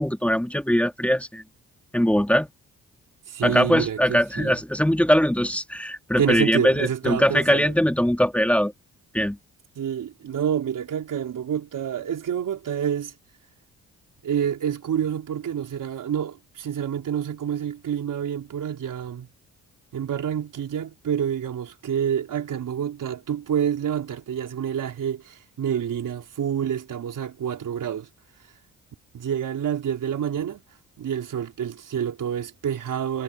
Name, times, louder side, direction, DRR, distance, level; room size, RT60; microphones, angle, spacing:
voice 1, 0.0-1.4 1.9-2.5 3.4-8.7 9.1-9.4, equal, 5° left, 2.8 m, -21 dB
voice 2, 3.3-4.6 6.2-7.7 9.8-13.1 14.2-19.3 19.9-28.1 29.1-30.6 31.0-33.2, right 9 dB, 70° right, 4.9 m, -28 dB
supercardioid pair, 65°, 33 cm